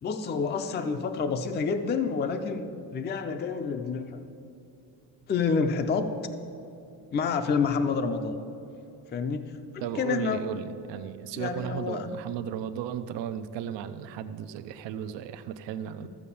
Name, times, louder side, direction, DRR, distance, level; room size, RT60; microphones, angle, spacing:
voice 1, 0.0-4.2 5.3-6.1 7.1-8.3 9.1-9.5 10.0-10.4 11.4-12.1 16.0-16.1, left 5 dB, 25° left, 7 dB, 0.4 m, -28 dB
voice 2, 9.8-16.1, right 9 dB, 85° right, 10 dB, 0.7 m, -35 dB
13.0 x 7.5 x 7.0 m, 2.7 s
cardioid pair, 175°, 43 cm